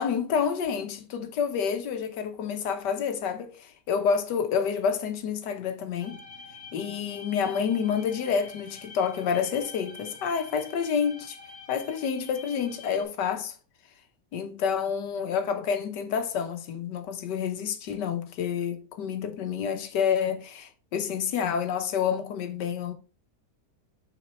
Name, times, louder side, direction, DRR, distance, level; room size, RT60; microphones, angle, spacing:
voice 1, 0.0-6.2 6.7-11.4 11.7-13.5 14.3-22.9, left 7 dB, 85° left, 1.6 m, -28 dB
sound 1, 6.0-13.0, left 4 dB, 45° left, 2.5 m, -47 dB
6.1 x 5.2 x 4.3 m
omnidirectional pair, 1.8 m